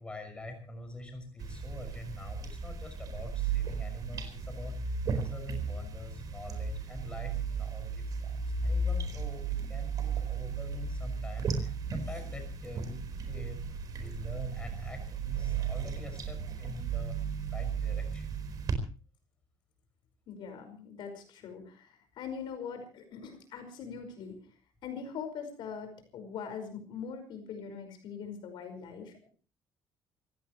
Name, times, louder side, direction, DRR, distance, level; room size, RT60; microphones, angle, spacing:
voice 1, 0.0-13.6 13.9-17.2 17.5-18.3, left 2 dB, 10° left, 4 dB, 6.0 m, -45 dB
sound 1, 1.4-18.7, right 5 dB, 45° right, 4.5 m, -35 dB
voice 2, 20.3-24.6 24.8-29.3, left 6 dB, 60° left, 7 dB, 5.2 m, -42 dB
27.5 x 16.0 x 3.1 m, 0.37 s
cardioid pair, 170°, 9 cm